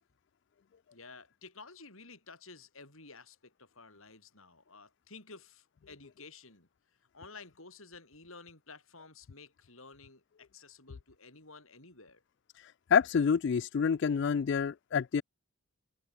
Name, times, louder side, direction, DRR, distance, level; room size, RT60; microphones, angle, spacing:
voice 1, 0.9-6.7 7.1-12.2, left 4 dB, 70° left, 7.7 m, -53 dB
voice 2, 12.6-15.2, left 6 dB, 55° left, 0.3 m, -28 dB
head